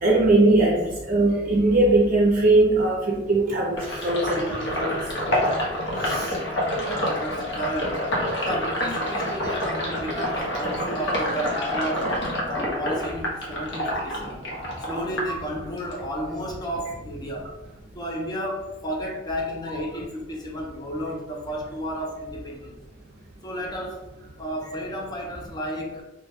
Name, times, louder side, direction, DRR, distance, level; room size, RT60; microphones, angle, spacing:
voice 1, 0.0-4.9 5.1-5.4 6.0-6.3 19.7-19.8, right 2 dB, 45° right, -3 dB, 0.5 m, -20 dB
Sink (filling or washing), 3.8-16.0 16.4-17.8, equal, 70° left, 0.9 m, -28 dB
voice 2, 6.7-8.0 8.4-12.2 12.5-14.5 14.9-17.5 17.9-22.8 23.4-24.0 24.4-26.0, equal, 20° left, 0 dB, 0.6 m, -32 dB
3.0 x 2.1 x 3.5 m, 0.94 s
head